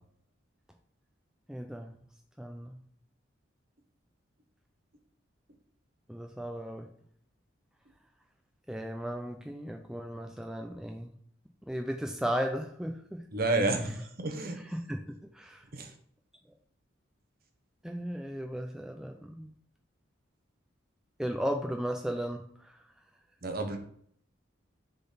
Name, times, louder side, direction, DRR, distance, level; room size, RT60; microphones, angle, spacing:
voice 1, 1.5-2.0 2.4-2.8 6.1-6.9 8.7-11.1 11.7-13.3 14.4-15.7 17.8-19.5 21.2-22.8, equal, 5° right, 3 dB, 0.4 m, -36 dB
voice 2, 13.3-14.6 15.7-15.9 23.4-23.8, right 2 dB, 50° right, 6 dB, 1.0 m, -30 dB
6.6 x 3.9 x 4.1 m, 0.63 s
head